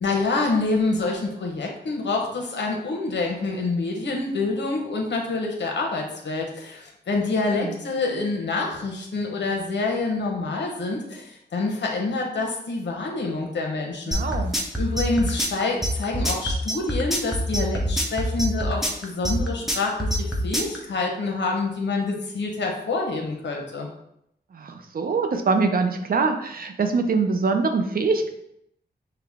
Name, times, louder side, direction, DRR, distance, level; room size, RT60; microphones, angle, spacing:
voice 1, 0.0-14.3 14.8-23.9, left 3 dB, 80° left, 1 dB, 0.9 m, -27 dB
sound 1, 14.1-20.8, equal, ahead, 0.8 m, -25 dB
voice 2, 14.1-14.5 24.5-28.3, right 4 dB, 55° right, 6 dB, 0.5 m, -24 dB
5.8 x 2.2 x 3.5 m, 0.77 s
wide cardioid pair, 90°, 18 cm